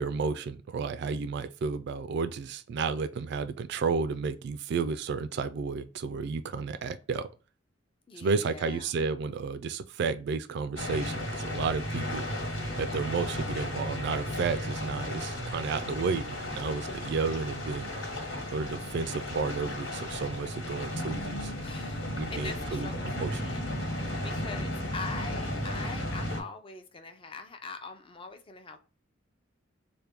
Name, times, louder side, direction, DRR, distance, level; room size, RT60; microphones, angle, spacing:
voice 1, 0.0-7.3 8.2-12.3 12.7-17.9 18.5-21.5 22.2-23.5, right 5 dB, 60° right, 0.3 m, -32 dB
voice 2, 8.1-8.9 21.6-23.6 24.2-28.8, left 4 dB, 30° left, 0.5 m, -43 dB
sound 1, 10.8-26.4, left 1 dB, 80° left, 1.6 m, -34 dB
3.4 x 2.2 x 4.3 m
head